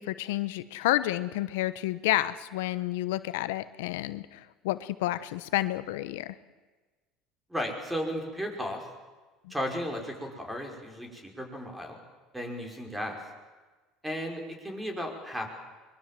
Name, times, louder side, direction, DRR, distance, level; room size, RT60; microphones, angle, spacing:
voice 1, 0.0-6.3, left 16 dB, 90° left, 14 dB, 0.8 m, -30 dB
voice 2, 7.5-8.8 9.5-12.0 12.3-13.2 14.0-15.5, equal, 5° right, 3 dB, 5.4 m, -34 dB
24.0 x 22.0 x 7.6 m, 1.3 s
supercardioid pair, 110°, 0 cm